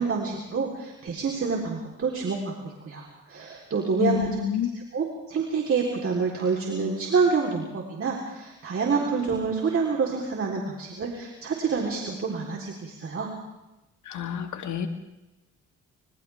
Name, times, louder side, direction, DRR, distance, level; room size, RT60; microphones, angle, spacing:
voice 1, 0.0-2.5 2.8-4.3 4.9-13.3, right 5 dB, 45° right, 0 dB, 4.0 m, -27 dB
voice 2, 4.0-4.7 14.0-14.9, left 9 dB, 75° left, 5 dB, 2.2 m, -28 dB
30.0 x 27.0 x 3.6 m, 0.99 s
cardioid pair, 90°, 30 cm